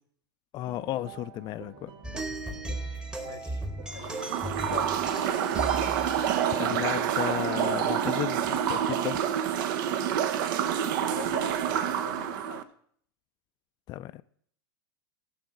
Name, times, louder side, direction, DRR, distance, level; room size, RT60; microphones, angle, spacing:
voice 1, 0.5-1.9 6.5-9.2 13.9-14.2, left 14 dB, 35° left, 0.4 m, -34 dB
sound 1, 0.6-12.4, right 7 dB, 35° right, 1.3 m, -47 dB
sound 2, 2.0-7.8, right 1 dB, 5° right, 1.2 m, -37 dB
voice 2, 3.2-4.4 4.7-4.9 10.9-12.6, left 7 dB, 85° left, 1.0 m, -43 dB
sound 3, 4.0-12.6, right 9 dB, 60° right, 1.0 m, -28 dB
16.0 x 5.9 x 3.8 m
hypercardioid pair, 105°, 12 cm